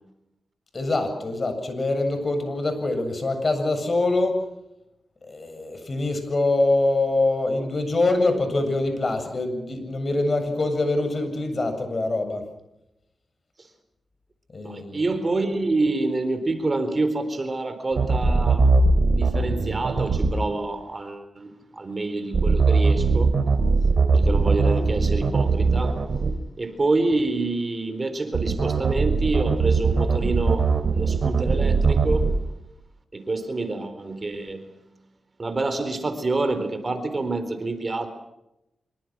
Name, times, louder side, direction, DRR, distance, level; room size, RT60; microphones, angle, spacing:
voice 1, 0.7-4.4 5.2-12.4 14.5-15.0, left 2 dB, 45° left, 7.7 m, -24 dB
voice 2, 14.6-18.8 19.1-23.3 24.1-26.0 26.6-32.4 33.1-34.7 35.4-38.1, right 2 dB, 40° right, 4.1 m, -27 dB
sound 1, 17.9-20.3 22.3-26.3 28.3-32.3, right 4 dB, 65° right, 3.2 m, -20 dB
26.0 x 24.0 x 6.2 m
cardioid pair, 65°, 0 cm